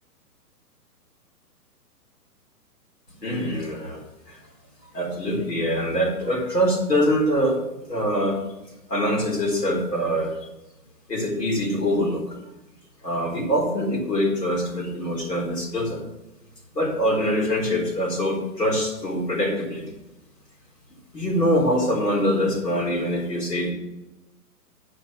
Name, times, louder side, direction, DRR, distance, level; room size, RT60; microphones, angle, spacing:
voice 1, 3.2-4.0 4.3-4.4 4.9-7.6 7.9-8.4 8.9-10.5 11.1-12.3 13.0-16.0 16.7-19.8 21.1-23.7, equal, 90° left, -1 dB, 4.0 m, -24 dB
10.0 x 5.2 x 6.0 m, 0.98 s
figure-of-eight pair, 125°, 47 cm